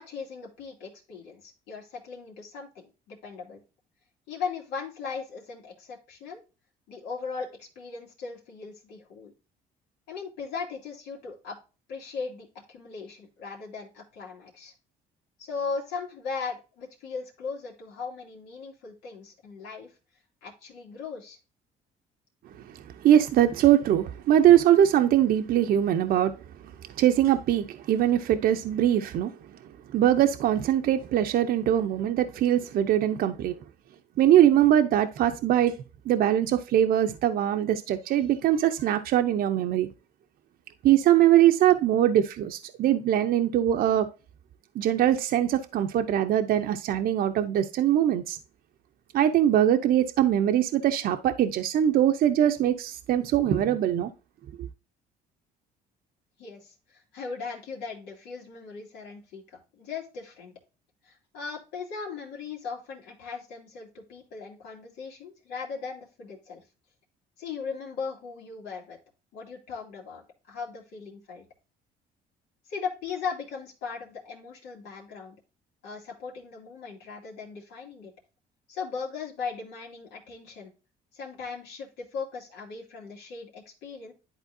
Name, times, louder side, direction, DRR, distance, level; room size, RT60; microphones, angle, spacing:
voice 1, 0.0-3.6 4.3-6.4 6.9-9.3 10.1-11.6 11.9-14.7 15.4-19.9 20.4-21.4 56.4-60.5 61.0-66.6 67.4-69.0 69.3-71.4 72.7-75.4 75.8-78.1 78.7-80.7 81.1-84.1, left 5 dB, 90° left, 2.5 m, -38 dB
voice 2, 22.7-26.3 27.0-29.3 29.9-33.6 34.2-35.8 36.1-39.9 40.8-44.1 44.7-48.4 49.1-54.1 54.6-54.7, right 11 dB, 60° right, 0.7 m, -22 dB
11.0 x 4.3 x 2.7 m
cardioid pair, 110°, 17 cm